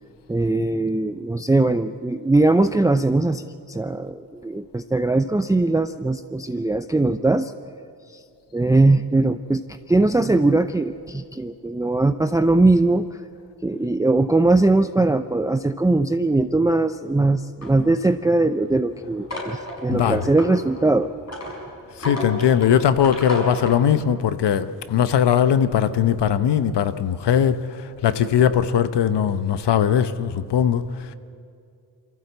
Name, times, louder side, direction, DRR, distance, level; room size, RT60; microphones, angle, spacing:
voice 1, 0.3-7.5 8.1-8.2 8.5-13.2 13.6-21.1, right 2 dB, 10° right, 0.5 m, -20 dB
sound 1, 17.6-23.8, left 1 dB, 40° left, 6.1 m, -34 dB
voice 2, 19.9-20.3 22.0-27.6 28.0-30.8, left 9 dB, 80° left, 1.0 m, -19 dB
23.5 x 15.0 x 8.1 m
cardioid pair, 60°, 41 cm